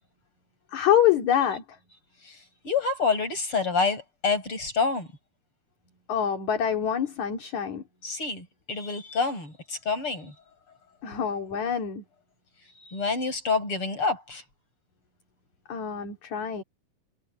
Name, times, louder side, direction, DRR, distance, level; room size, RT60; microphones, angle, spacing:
voice 1, 0.7-1.8 6.1-7.8 11.0-12.0 15.7-16.6, left 9 dB, 60° left, 4.0 m, -25 dB
voice 2, 2.2-5.1 8.0-10.4 11.1-11.2 12.8-14.4, left 4 dB, 40° left, 8.8 m, -28 dB
omnidirectional pair, 3.8 m